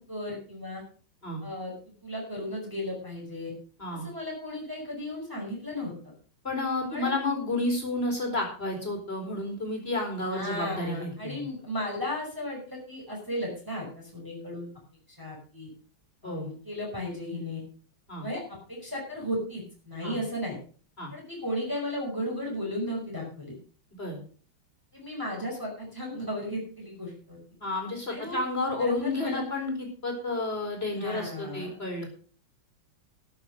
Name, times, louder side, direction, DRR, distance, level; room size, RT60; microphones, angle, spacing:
voice 1, 0.1-0.8 1.4-1.7 2.0-3.5 4.0-6.1 6.9-7.1 10.3-14.7 15.2-15.7 16.2-17.6 18.2-20.6 21.1-23.6 24.9-27.4 28.1-28.4 28.8-29.4 30.9-31.8, left 1 dB, 10° right, -2 dB, 5.3 m, -35 dB
voice 2, 6.4-11.4 16.2-16.5 18.1-18.2 20.0-20.2 21.0-21.1 24.0-24.2 27.6-32.1, left 2 dB, 25° left, 2 dB, 4.7 m, -31 dB
13.0 x 9.2 x 6.5 m, 0.42 s
omnidirectional pair, 2.3 m